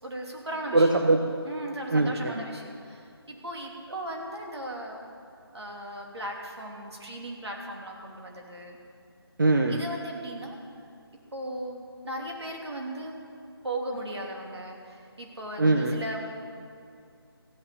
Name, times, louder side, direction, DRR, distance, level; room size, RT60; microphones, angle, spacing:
voice 1, 0.0-1.0 1.4-5.0 5.5-8.8 9.7-10.6 11.3-13.2 13.6-16.2, right 1 dB, 85° right, 0 dB, 2.9 m, -37 dB
voice 2, 0.7-1.2 1.9-2.3 9.4-9.8 15.6-15.9, right 2 dB, 50° right, 3 dB, 0.8 m, -21 dB
15.0 x 8.7 x 7.0 m, 2.4 s
figure-of-eight pair, 180°, 13 cm